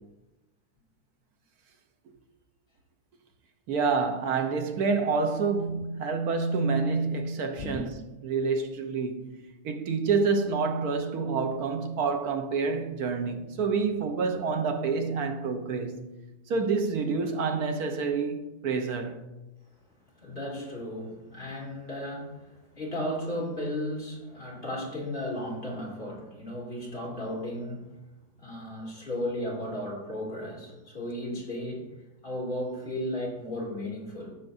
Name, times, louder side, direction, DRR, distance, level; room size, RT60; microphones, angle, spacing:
voice 1, 3.7-7.9 8.2-16.1 16.5-19.2, right 4 dB, 85° right, 1.4 m, -28 dB
voice 2, 20.2-22.4 22.7-27.9 28.4-31.9 32.2-34.3, left 1 dB, 35° left, 3.0 m, -34 dB
14.5 x 6.5 x 2.6 m
omnidirectional pair, 1.6 m